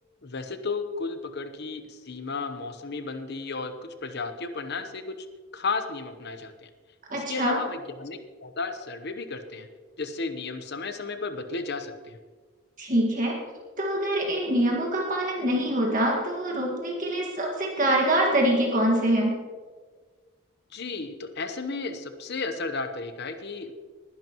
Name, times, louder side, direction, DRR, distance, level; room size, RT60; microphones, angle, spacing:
voice 1, 0.2-5.2 5.5-6.7 7.1-9.7 10.0-12.2 20.7-23.7, left 4 dB, 50° left, 8 dB, 0.9 m, -33 dB
voice 2, 7.1-7.6 12.8-13.4 13.8-19.4, right 1 dB, 40° right, -1 dB, 1.8 m, -24 dB
20.0 x 11.0 x 3.0 m, 1.5 s
head